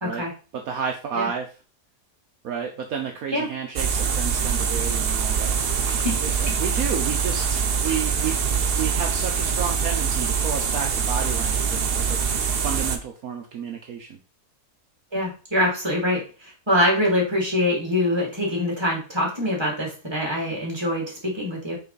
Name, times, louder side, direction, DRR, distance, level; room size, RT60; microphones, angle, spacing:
voice 1, 0.0-0.3 1.1-1.3 3.3-3.5 5.8-6.2 6.5-6.6 15.1-21.8, left 1 dB, 15° right, -2 dB, 2.7 m, -24 dB
voice 2, 0.5-1.5 2.4-5.6 5.9-8.4 8.7-12.2 12.6-14.2, right 7 dB, 65° right, 3 dB, 1.2 m, -31 dB
sound 1, 3.8-13.0, right 6 dB, 50° right, 0.8 m, -24 dB
5.6 x 4.9 x 4.0 m, 0.34 s
omnidirectional pair, 1.7 m